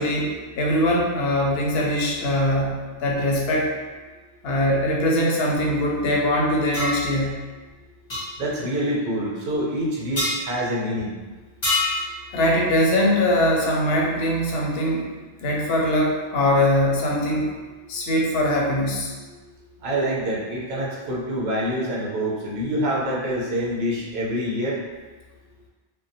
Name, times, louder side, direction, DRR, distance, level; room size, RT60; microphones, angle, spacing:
voice 1, 0.0-3.7 4.4-7.4 12.3-15.1 15.4-17.5 17.9-19.1, left 1 dB, 70° left, -1 dB, 0.8 m, -22 dB
sound 1, 6.7-7.0 8.1-8.2 10.2-10.4 11.6-12.0, left 2 dB, 35° left, 0.5 m, -23 dB
voice 2, 8.4-11.1 19.8-24.8, equal, 75° right, -3 dB, 0.9 m, -26 dB
2.6 x 2.2 x 2.6 m, 1.3 s
omnidirectional pair, 1.1 m